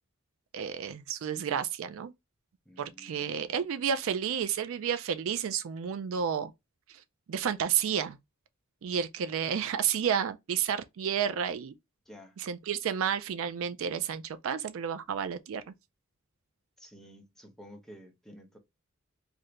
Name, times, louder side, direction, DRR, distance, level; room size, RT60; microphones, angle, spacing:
voice 1, 0.5-2.1 2.8-6.5 6.9-7.0 7.3-8.2 8.8-11.8 12.4-15.7, right 8 dB, 65° right, 0.4 m, -31 dB
voice 2, 2.7-3.5 12.1-12.4 16.8-18.6, equal, ahead, 0.7 m, -52 dB
2.7 x 2.5 x 3.1 m
head